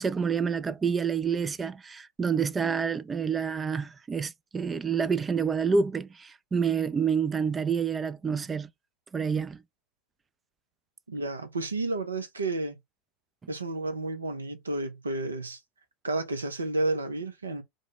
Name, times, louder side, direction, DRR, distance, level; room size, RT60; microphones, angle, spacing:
voice 1, 0.0-8.7 9.1-9.6, right 6 dB, 20° right, 0.3 m, -28 dB
voice 2, 11.1-12.8 13.5-15.6 16.0-17.6, right 2 dB, 85° right, 0.6 m, -31 dB
3.1 x 2.2 x 3.9 m
figure-of-eight pair, 80°, 0 cm